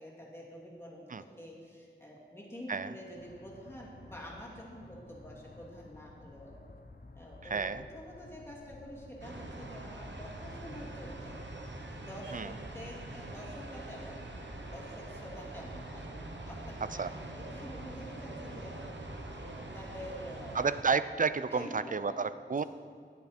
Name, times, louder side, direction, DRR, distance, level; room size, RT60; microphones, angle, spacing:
voice 1, 0.0-6.6 7.1-11.6 12.1-14.2 14.7-16.1 16.5-18.7 19.3-20.8 21.5-22.3, equal, 15° left, -4 dB, 2.5 m, -47 dB
sound 1, 3.1-20.4, left 2 dB, 50° left, 0.7 m, -56 dB
voice 2, 7.5-7.8 12.3-12.5 17.0-17.1 20.5-22.6, right 5 dB, 45° right, 14 dB, 0.4 m, -31 dB
sound 2, 9.2-20.8, right 2 dB, 70° right, 1.0 m, -44 dB
10.5 x 10.0 x 4.3 m, 2.2 s
wide cardioid pair, 50°, 19 cm